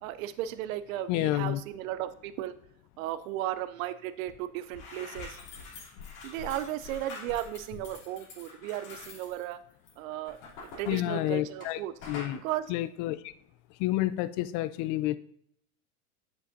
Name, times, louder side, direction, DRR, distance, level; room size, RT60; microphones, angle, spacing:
voice 1, 0.0-2.5 3.0-5.4 6.2-9.6 10.0-11.9 12.4-12.6, right 13 dB, 65° right, 13 dB, 0.6 m, -35 dB
voice 2, 1.1-1.6 10.9-11.8 12.1-12.4 12.7-13.3 13.8-15.2, left 15 dB, 40° left, 15 dB, 0.4 m, -29 dB
sound 1, 4.3-4.4 4.6-11.7 12.0-12.4, left 4 dB, 70° left, 2.9 m, -45 dB
7.5 x 7.2 x 2.6 m, 0.68 s
hypercardioid pair, 105°, 45 cm